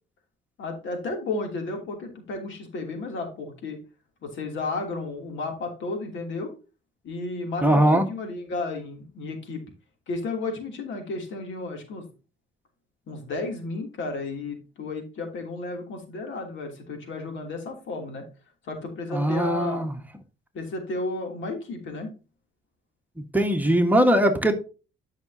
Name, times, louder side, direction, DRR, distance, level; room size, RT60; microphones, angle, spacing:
voice 1, 0.6-3.8 4.2-6.5 7.0-9.6 10.1-12.0 13.1-18.2 18.6-19.9 20.5-22.1, left 3 dB, 75° left, 3 dB, 3.1 m, -33 dB
voice 2, 7.6-8.0 19.1-19.9 23.2-24.5, right 1 dB, 10° right, 4 dB, 1.6 m, -20 dB
11.5 x 6.1 x 2.8 m, 0.33 s
cardioid pair, 90°, 20 cm